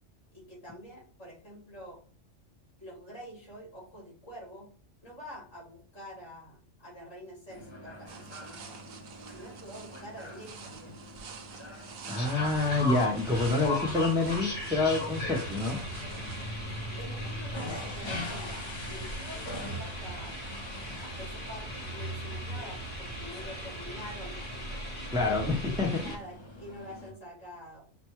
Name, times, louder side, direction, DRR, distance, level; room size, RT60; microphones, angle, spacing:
voice 1, 0.3-2.0 2.8-4.7 5.0-8.8 9.3-11.0 17.0-20.4 21.0-24.4 25.6-27.8, equal, 85° left, -4 dB, 2.6 m, -47 dB
sound 1, 7.5-27.1, left 1 dB, 25° left, 0.8 m, -45 dB
sound 2, 8.1-16.5, right 6 dB, 60° right, 0.8 m, -48 dB
voice 2, 12.1-15.8 25.1-26.1, left 3 dB, 5° right, 0 dB, 0.4 m, -27 dB
sound 3, 12.2-26.2, equal, 55° left, 1.3 m, -37 dB
5.9 x 2.2 x 3.0 m, 0.42 s
omnidirectional pair, 1.3 m